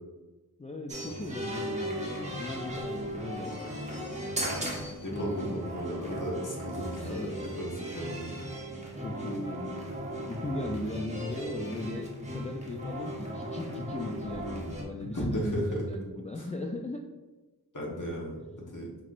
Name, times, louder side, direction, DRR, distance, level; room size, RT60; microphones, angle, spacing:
voice 1, 0.6-3.9 5.1-5.6 7.0-7.4 9.0-9.8 10.2-17.0, left 1 dB, 20° left, 1 dB, 0.3 m, -38 dB
sound 1, 0.9-14.8, equal, 20° right, 0.9 m, -37 dB
voice 2, 5.0-7.3 7.6-8.3 15.1-15.8 17.7-18.4 18.7-18.9, equal, 50° left, -3 dB, 1.2 m, -34 dB
5.7 x 3.0 x 2.5 m, 1.2 s
wide cardioid pair, 60°, 38 cm